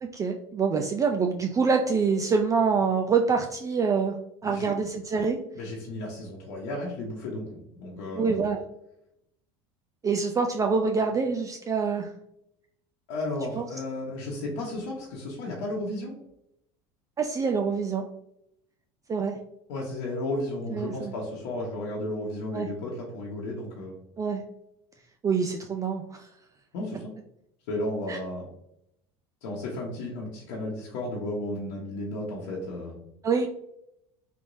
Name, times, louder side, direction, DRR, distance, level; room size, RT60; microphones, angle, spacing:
voice 1, 0.0-4.1 4.4-5.4 8.1-8.6 10.0-12.1 13.5-13.7 17.2-18.0 19.1-19.4 20.7-21.1 22.5-22.7 24.2-24.4 25.2-26.3 28.1-28.2 33.2-33.5, right 5 dB, 25° right, 3 dB, 0.3 m, -26 dB
voice 2, 4.4-4.7 5.5-8.4 13.1-16.1 19.7-24.0 26.7-27.1 27.7-28.5 29.4-33.0, left 1 dB, 80° left, -4 dB, 0.9 m, -33 dB
3.4 x 3.1 x 2.6 m, 0.78 s
supercardioid pair, 100°, 14 cm